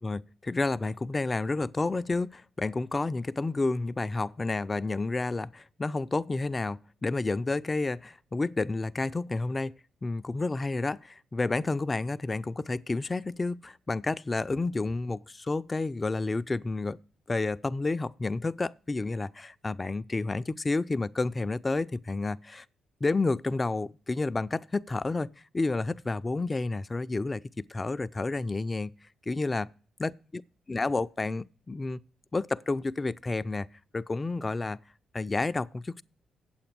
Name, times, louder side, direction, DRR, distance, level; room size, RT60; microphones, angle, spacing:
voice 1, 0.0-9.7 10.0-17.0 17.3-22.6 23.0-25.3 25.5-28.9 29.3-29.7 30.0-30.4 30.7-32.0 32.3-33.7 33.9-34.8 35.1-36.0, left 3 dB, 30° left, 0.5 m, -30 dB
8.5 x 7.9 x 5.9 m
hypercardioid pair, 50°, 0 cm